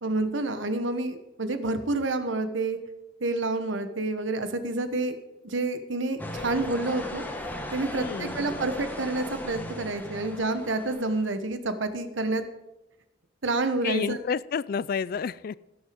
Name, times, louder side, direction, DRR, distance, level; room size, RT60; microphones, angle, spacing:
voice 1, 0.0-2.8 3.2-5.2 5.4-7.2 7.7-12.4 13.4-14.2, right 2 dB, 85° right, 10 dB, 1.1 m, -28 dB
sound 1, 6.2-11.3, left 1 dB, 10° left, 1.1 m, -37 dB
voice 2, 7.9-8.4 13.8-15.6, left 6 dB, 50° left, 19 dB, 0.3 m, -30 dB
17.5 x 6.3 x 5.1 m, 0.92 s
head